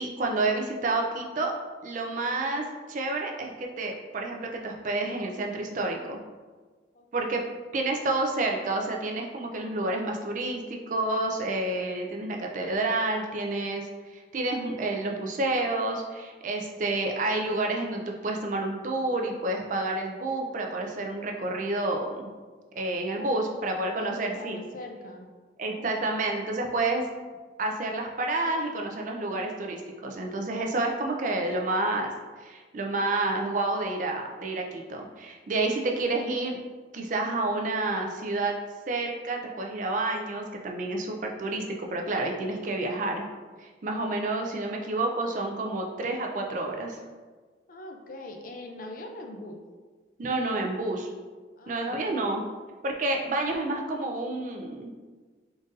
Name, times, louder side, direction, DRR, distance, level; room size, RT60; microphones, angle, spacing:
voice 1, 0.0-1.5 1.8-2.6 2.9-6.2 7.1-7.4 7.7-22.3 22.8-24.6 25.6-27.0 27.6-32.1 32.4-36.6 36.9-38.5 38.9-43.3 43.6-47.0 50.2-51.1 51.7-52.4 52.8-54.9, right 2 dB, 45° right, 1 dB, 0.4 m, -29 dB
voice 2, 6.9-7.4 23.1-25.3 25.6-26.1 44.4-44.6 47.7-49.6 51.6-52.3, left 2 dB, 45° left, 3 dB, 0.4 m, -43 dB
3.9 x 2.5 x 3.8 m, 1.4 s
head